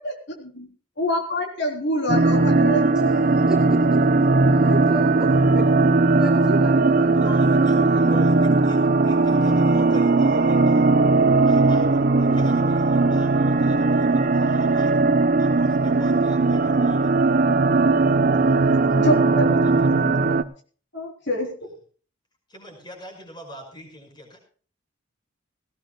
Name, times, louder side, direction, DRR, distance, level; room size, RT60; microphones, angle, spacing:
voice 1, 1.0-2.8 18.3-18.4 18.9-20.0 20.9-21.5, equal, 55° left, 1 dB, 3.8 m, -26 dB
sound 1, 2.1-20.4, right 3 dB, 40° right, 0.8 m, -18 dB
voice 2, 2.9-8.2, right 1 dB, 5° right, 0 dB, 2.2 m, -34 dB
voice 3, 7.1-10.9 11.4-15.1 15.3-17.1 19.5-20.0 21.6-21.7 22.5-24.4, left 1 dB, 20° left, 3 dB, 5.7 m, -43 dB
19.5 x 17.0 x 2.3 m, 0.41 s
head